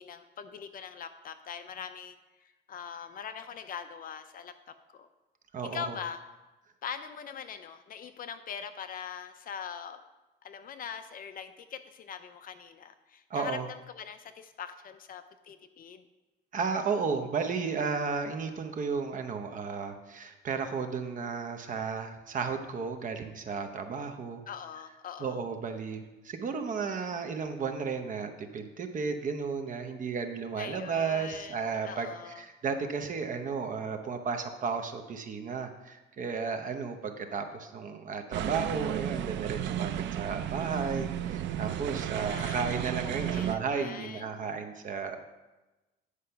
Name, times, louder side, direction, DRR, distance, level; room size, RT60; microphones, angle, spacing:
voice 1, 0.0-4.5 4.9-5.1 5.7-6.2 6.8-10.0 10.4-16.0 24.5-25.4 30.6-31.6 31.8-32.4 42.2-42.8 43.3-44.2, left 7 dB, 50° left, 10 dB, 0.6 m, -42 dB
voice 2, 5.5-6.0 13.3-13.7 16.5-24.4 25.2-45.2, right 5 dB, 45° right, 7 dB, 0.9 m, -33 dB
sound 1, 38.3-43.6, right 11 dB, 75° right, 0.5 m, -33 dB
9.8 x 4.9 x 5.7 m, 1.1 s
cardioid pair, 140°, 19 cm